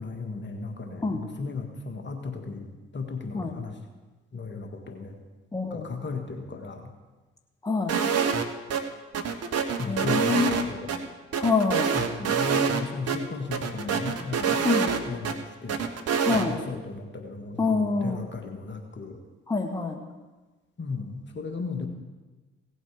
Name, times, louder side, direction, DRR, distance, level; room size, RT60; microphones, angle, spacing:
voice 1, 0.0-3.8 4.3-5.2 5.7-6.9 9.8-10.9 11.9-14.7 15.1-15.8 16.2-19.2 20.8-21.9, left 4 dB, 35° left, 4 dB, 1.7 m, -36 dB
voice 2, 5.5-5.9 7.6-8.0 9.9-10.6 11.4-11.9 14.6-14.9 16.2-16.5 17.6-18.2 19.5-20.0, left 4 dB, 10° left, 3 dB, 1.7 m, -26 dB
sound 1, 7.9-8.4 8.7-8.8 9.1-11.0 11.3-12.8 13.1-13.2 13.5-15.3 15.7-16.5, right 6 dB, 50° right, 1.2 m, -26 dB
17.0 x 8.1 x 4.8 m, 1.2 s
figure-of-eight pair, 45°, 31 cm